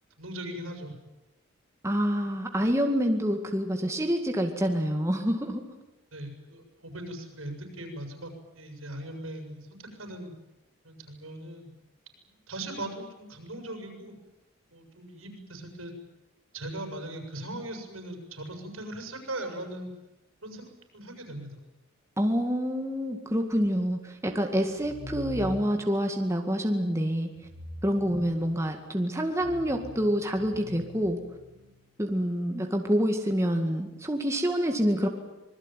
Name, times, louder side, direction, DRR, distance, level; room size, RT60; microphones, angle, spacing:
voice 1, 0.2-1.0 6.1-10.3 10.8-11.7 12.5-14.1 14.7-15.9 16.5-19.9 20.4-21.6 28.2-28.3, right 1 dB, 80° right, 5 dB, 7.0 m, -39 dB
voice 2, 1.8-5.6 22.2-27.3 27.8-31.2 32.0-35.1, equal, 15° right, 3 dB, 2.1 m, -27 dB
sound 1, 24.7-26.0 27.4-28.8 29.3-31.8, equal, 65° right, 7.2 m, -43 dB
26.0 x 21.0 x 9.2 m, 1.0 s
head